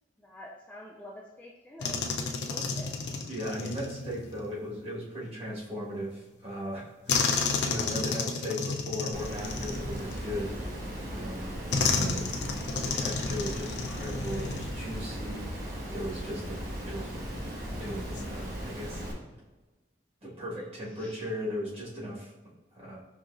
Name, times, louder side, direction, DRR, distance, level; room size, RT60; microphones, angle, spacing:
voice 1, 0.2-3.1 8.0-8.1 20.2-21.2, left 1 dB, 10° left, -3 dB, 0.3 m, -48 dB
sound 1, 1.8-4.5 7.1-10.6 11.7-15.1 15.4-15.6 17.9-18.2, left 4 dB, 70° left, 0.4 m, -32 dB
voice 2, 3.3-10.5 11.1-11.5 11.9-12.2 12.8-16.5 16.8-17.1 17.8-19.0 20.2-22.3 22.7-23.0, equal, 35° right, -6 dB, 1.4 m, -37 dB
Water, 9.1-19.1, equal, 60° right, 1.2 m, -37 dB
5.1 x 2.8 x 2.5 m, 1.2 s
head